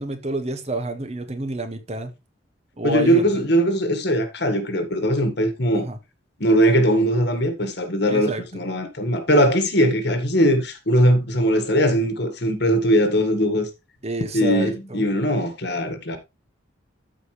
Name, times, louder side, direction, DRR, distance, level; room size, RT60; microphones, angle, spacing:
voice 1, 0.0-2.1 2.8-3.3 5.7-6.0 8.1-8.6 14.0-15.1, right 2 dB, 30° right, 1.1 m, -28 dB
voice 2, 2.8-5.9 6.4-13.7 14.3-16.2, equal, 55° left, 1.8 m, -20 dB
13.5 x 4.9 x 3.3 m
head